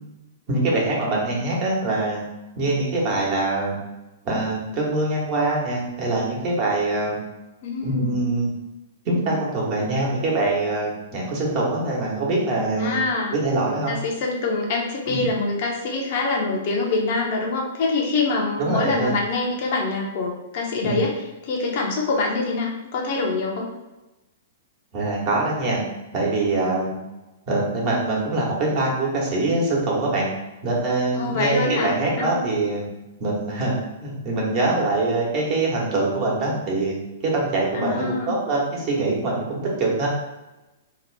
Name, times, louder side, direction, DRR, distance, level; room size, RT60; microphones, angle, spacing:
voice 1, 0.5-2.2 2.5-3.8 4.2-7.2 7.8-8.5 9.0-13.0 13.3-14.0 15.1-15.3 18.6-19.2 20.8-21.0 24.9-25.8 26.1-26.9 27.5-30.3 30.6-32.8 33.2-36.9 37.2-40.1, right 2 dB, 40° right, -3 dB, 1.1 m, -23 dB
voice 2, 7.6-8.3 12.8-13.4 13.9-21.1 21.4-23.7 31.1-32.4 37.7-38.4, left 3 dB, 50° left, -1 dB, 0.7 m, -25 dB
2.9 x 2.4 x 3.2 m, 1.0 s
figure-of-eight pair, 110°, 0 cm